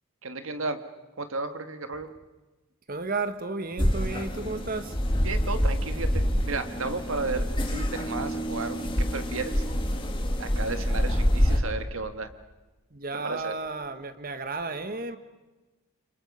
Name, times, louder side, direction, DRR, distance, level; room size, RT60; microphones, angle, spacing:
voice 1, 0.2-0.8 1.2-2.1 5.2-9.6 10.4-12.3 13.2-13.5, right 3 dB, 65° right, 1.7 m, -33 dB
voice 2, 2.9-5.0 12.9-15.2, right 3 dB, 40° right, 1.2 m, -33 dB
sound 1, 3.8-11.6, equal, 25° left, 2.3 m, -27 dB
29.5 x 26.0 x 5.5 m
head